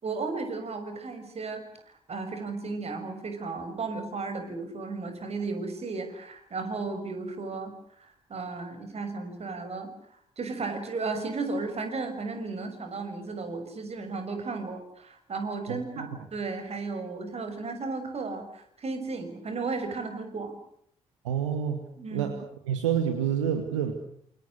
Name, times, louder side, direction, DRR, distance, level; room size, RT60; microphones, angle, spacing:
voice 1, 0.0-9.9 10.4-20.6 22.0-22.3, right 3 dB, 40° right, 7 dB, 6.4 m, -34 dB
voice 2, 15.7-16.1 21.2-21.8 22.1-22.3 22.7-23.9, right 8 dB, 75° right, 7 dB, 2.0 m, -28 dB
28.0 x 27.0 x 6.7 m, 0.66 s
figure-of-eight pair, 40°, 16 cm